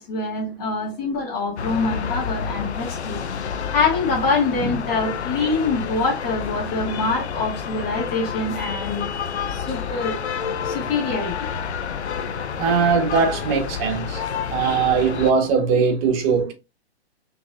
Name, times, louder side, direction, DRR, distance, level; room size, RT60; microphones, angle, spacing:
voice 1, 0.0-9.1 9.5-10.2 10.6-11.5, left 3 dB, 25° left, 2.1 m, -25 dB
sound 1, 1.6-15.3, left 7 dB, 75° left, 0.7 m, -29 dB
voice 2, 12.5-14.2 14.5-16.5, right 5 dB, 35° right, 1.3 m, -20 dB
5.8 x 3.5 x 2.5 m
hypercardioid pair, 125°, 33 cm